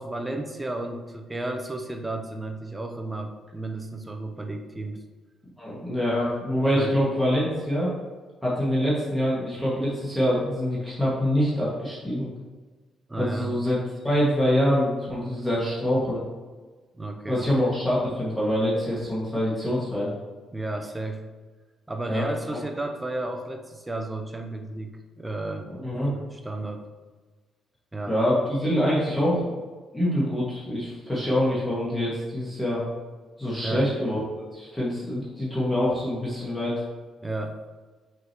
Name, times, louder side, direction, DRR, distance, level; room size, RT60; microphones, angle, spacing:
voice 1, 0.0-5.0 6.7-7.0 13.1-13.6 16.9-17.5 20.5-21.2 21.9-25.7 26.1-26.9 27.9-28.2 33.6-33.9 37.2-37.6, right 2 dB, 15° right, 4 dB, 0.7 m, -33 dB
voice 2, 5.6-7.9 8.4-12.3 13.2-16.2 17.3-20.1 22.1-22.6 25.7-26.1 28.1-29.5 29.9-32.8 33.4-34.2 34.5-36.8, equal, 10° left, -7 dB, 1.9 m, -25 dB
6.2 x 5.5 x 3.0 m, 1.3 s
cardioid pair, 90°, 0 cm